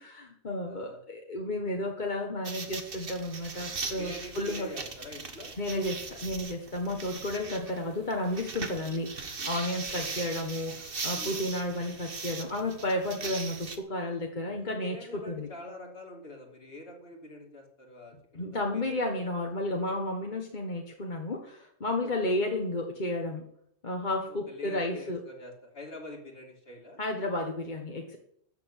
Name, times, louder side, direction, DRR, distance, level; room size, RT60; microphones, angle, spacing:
voice 1, 0.0-4.7 5.6-15.5 18.3-23.4 23.8-25.2 27.0-28.2, left 1 dB, 45° left, 1 dB, 1.5 m, -32 dB
voice 2, 0.7-1.0 4.0-5.5 9.9-10.3 11.1-11.4 14.6-19.3 22.0-22.3 24.3-27.0, left 2 dB, 60° left, 0 dB, 3.0 m, -46 dB
sound 1, 2.4-13.8, right 4 dB, 55° right, 1.5 m, -39 dB
13.5 x 6.9 x 8.3 m, 0.69 s
omnidirectional pair, 1.1 m